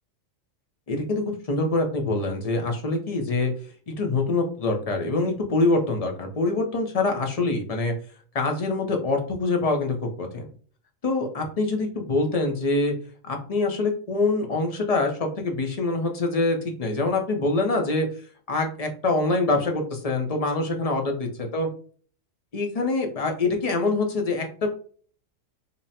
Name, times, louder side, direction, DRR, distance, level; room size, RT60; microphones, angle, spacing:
voice 1, 0.9-3.5 3.9-7.9 8.3-10.5 11.0-12.9 13.2-18.1 18.5-21.7 22.5-24.7, left 3 dB, 35° left, 3 dB, 0.6 m, -25 dB
5.2 x 2.1 x 2.8 m, 0.44 s
omnidirectional pair, 1.3 m